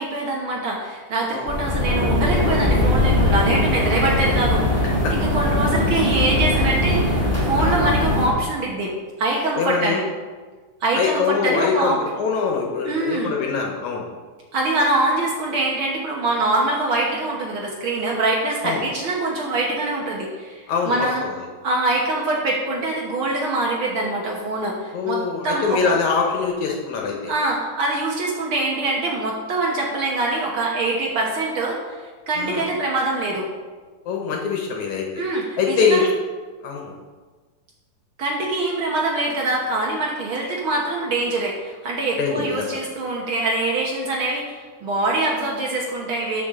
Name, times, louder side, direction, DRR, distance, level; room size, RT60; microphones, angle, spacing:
voice 1, 0.0-4.8 5.1-8.9 9.2-10.1 10.8-12.0 12.8-13.3 14.5-21.2 21.6-26.0 27.3-33.5 35.2-36.1 38.2-46.4, right 2 dB, 85° right, -2 dB, 1.1 m, -24 dB
sound 1, 1.5-8.3, left 1 dB, 5° right, 1.4 m, -20 dB
voice 2, 9.6-10.0 10.9-14.1 18.6-18.9 20.7-21.3 24.9-27.3 32.4-32.6 34.1-35.2 35.6-36.1 36.6-36.9 42.2-42.8, left 5 dB, 70° left, 0 dB, 2.0 m, -23 dB
13.0 x 5.6 x 3.7 m, 1.4 s
omnidirectional pair, 4.0 m